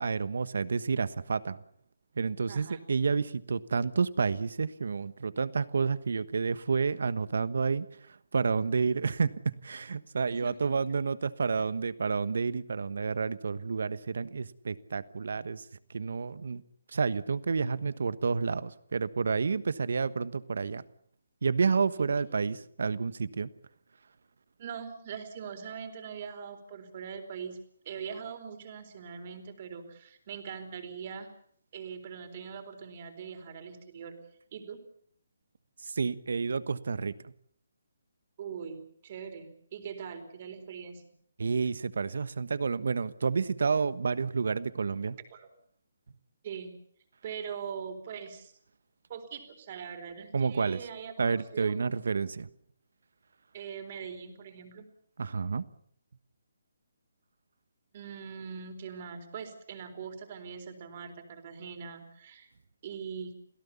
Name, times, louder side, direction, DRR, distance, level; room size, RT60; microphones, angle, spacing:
voice 1, 0.0-1.6 2.2-9.3 9.6-15.6 15.9-16.6 16.9-20.8 21.4-23.5 35.8-37.3 41.4-45.2 50.3-50.8 51.2-52.5 55.2-55.6, right 5 dB, 70° right, 16 dB, 1.3 m, -30 dB
voice 2, 2.5-2.8 10.3-10.8 22.0-22.5 24.6-27.6 27.8-31.3 31.7-34.2 34.5-34.8 38.4-41.0 45.3-45.5 46.4-46.8 47.2-48.5 49.1-51.9 53.5-54.9 57.9-62.5 62.8-63.4, right 7 dB, 40° right, 8 dB, 4.2 m, -42 dB
27.5 x 17.0 x 7.1 m, 0.64 s
hypercardioid pair, 150°, 0 cm